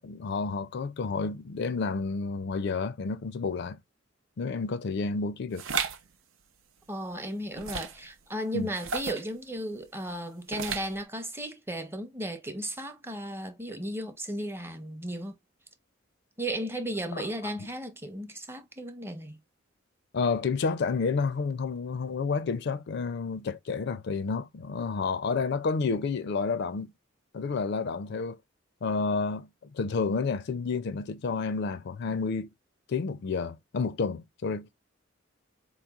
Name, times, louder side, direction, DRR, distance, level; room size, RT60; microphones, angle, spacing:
voice 1, 0.0-3.8 4.4-5.6 8.5-8.7 17.4-17.5 20.1-26.9 27.3-28.4 28.8-32.5 32.9-34.8, left 4 dB, 60° left, 0.4 m, -30 dB
sound 1, 5.6-6.0 7.6-8.1 8.7-9.3 10.5-11.0, right 6 dB, 80° right, 0.6 m, -33 dB
voice 2, 6.9-15.4 16.4-19.4, right 1 dB, 10° right, 0.6 m, -35 dB
4.1 x 3.0 x 2.3 m
head